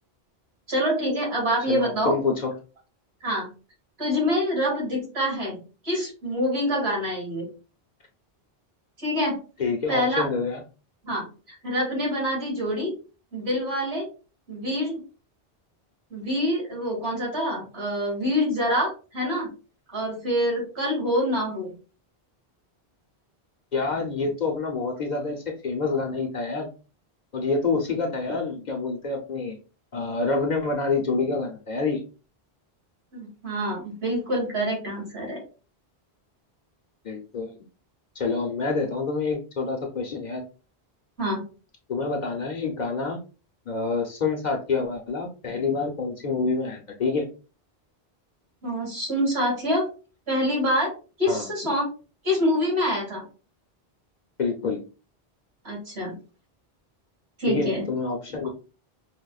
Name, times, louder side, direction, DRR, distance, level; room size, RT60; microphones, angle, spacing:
voice 1, 0.7-2.1 3.2-3.5 4.0-5.6 5.8-7.5 9.0-9.4 9.9-10.2 11.0-12.9 13.3-14.1 14.5-15.0 16.1-19.5 19.9-21.7 33.1-35.4 41.2-41.4 48.6-49.9 50.3-50.9 51.2-51.9 52.2-53.2 55.6-56.1 57.4-57.9, equal, 75° right, -3 dB, 2.3 m, -26 dB
voice 2, 1.7-2.5 9.6-10.6 23.7-26.7 27.3-29.6 29.9-32.0 37.0-37.6 38.2-40.4 41.9-43.2 43.7-47.3 51.3-51.5 54.4-54.8 57.5-58.5, left 4 dB, 50° left, 2 dB, 0.6 m, -27 dB
5.1 x 2.1 x 2.3 m, 0.34 s
omnidirectional pair, 1.1 m